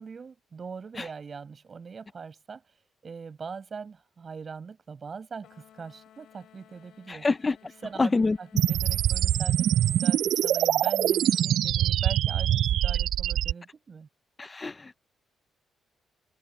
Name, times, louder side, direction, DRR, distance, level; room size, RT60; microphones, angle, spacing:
voice 1, 0.0-2.6 3.0-7.3 7.6-14.1, right 5 dB, 35° right, 6.5 m, -42 dB
sound 1, 5.4-11.5, left 11 dB, 70° left, 6.8 m, -57 dB
voice 2, 7.1-7.6 8.0-8.4 14.4-15.0, left 3 dB, 20° left, 0.4 m, -26 dB
sound 2, 8.6-13.5, right 12 dB, 75° right, 0.3 m, -24 dB
cardioid pair, 135°, 0 cm